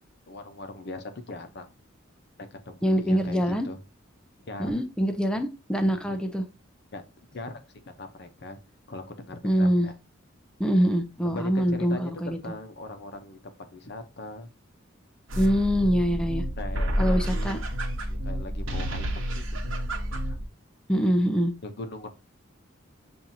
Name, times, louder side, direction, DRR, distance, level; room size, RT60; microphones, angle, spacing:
voice 1, 0.3-1.7 2.4-3.8 4.5-4.7 6.0-6.3 6.9-7.0 7.3-7.6 8.0-8.6 8.9-9.9 11.2-14.5 16.6-17.6 18.0-20.4 21.6-22.1, left 2 dB, 55° left, 7 dB, 0.7 m, -40 dB
voice 2, 2.8-3.7 4.6-6.4 9.4-9.9 10.6-12.4 15.4-16.4 17.0-17.6 20.9-21.5, equal, 5° left, 7 dB, 0.4 m, -24 dB
sound 1, 15.3-20.4, equal, 70° right, 1.0 m, -29 dB
7.2 x 2.6 x 2.7 m, 0.29 s
head